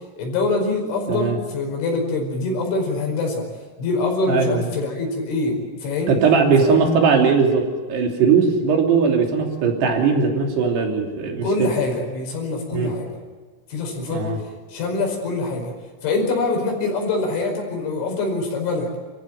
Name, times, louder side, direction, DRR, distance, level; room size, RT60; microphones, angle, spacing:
voice 1, 0.2-3.5 3.8-6.1 6.6-6.8 11.4-13.1 13.7-14.2 14.7-15.7 16.0-18.9, left 3 dB, 65° left, 2 dB, 7.4 m, -24 dB
voice 2, 4.3-4.7 6.1-11.7 12.7-12.9 14.1-14.4, right 5 dB, 60° right, 2 dB, 4.9 m, -19 dB
29.5 x 15.5 x 9.0 m, 1.5 s
omnidirectional pair, 5.8 m